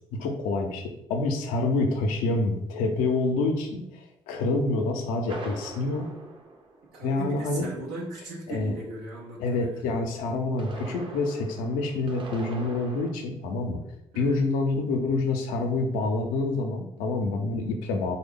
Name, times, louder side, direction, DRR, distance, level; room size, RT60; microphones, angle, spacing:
voice 1, 0.1-0.8 1.1-6.1 7.0-7.7 8.5-8.7 9.4-13.8 14.1-18.2, left 3 dB, 90° left, 4 dB, 0.5 m, -27 dB
sound 1, 5.3-7.4 10.3-13.1, right 2 dB, 40° right, 0.6 m, -42 dB
voice 2, 6.9-9.8 14.1-14.4, right 2 dB, 90° right, -4 dB, 0.6 m, -38 dB
3.3 x 2.2 x 3.6 m, 0.83 s
supercardioid pair, 55°, 13 cm